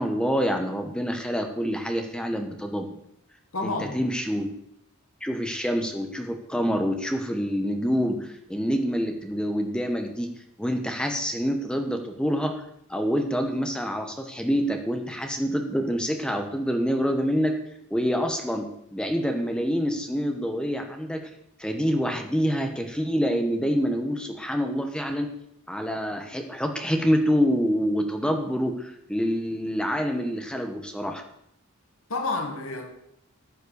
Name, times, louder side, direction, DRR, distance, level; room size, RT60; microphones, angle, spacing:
voice 1, 0.0-3.0 3.6-4.5 5.2-10.3 10.6-12.6 12.9-17.6 17.9-21.2 21.6-25.3 25.7-31.2, equal, 5° left, 1.3 m, -26 dB
voice 2, 3.5-4.0 32.1-32.9, left 3 dB, 70° left, 1.9 m, -29 dB
14.0 x 7.9 x 6.6 m
head